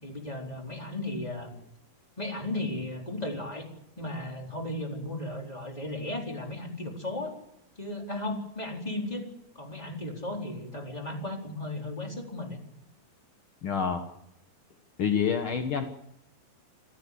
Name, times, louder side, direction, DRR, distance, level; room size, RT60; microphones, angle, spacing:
voice 1, 0.0-1.6 2.2-3.7 4.0-7.4 7.8-12.6, left 1 dB, 10° left, 1 dB, 3.9 m, -35 dB
voice 2, 13.6-14.0 15.0-15.8, left 7 dB, 65° left, 6 dB, 1.3 m, -27 dB
26.0 x 14.5 x 8.4 m, 0.79 s
omnidirectional pair, 4.4 m